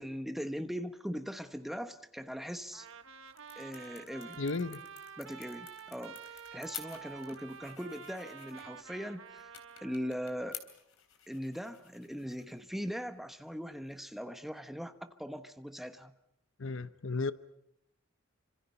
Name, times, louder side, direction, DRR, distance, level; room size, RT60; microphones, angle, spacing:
voice 1, 0.0-2.9 3.6-4.4 5.2-9.5 9.8-10.6 11.3-16.1, equal, ahead, 9 dB, 1.1 m, -40 dB
sound 1, 2.7-14.2, left 10 dB, 85° left, 3.5 m, -53 dB
Trumpet, 2.7-10.2, right 6 dB, 65° right, 1.4 m, -49 dB
voice 2, 4.4-4.8 16.6-17.3, left 3 dB, 65° left, 14 dB, 0.8 m, -34 dB
28.0 x 26.0 x 5.7 m, 0.77 s
head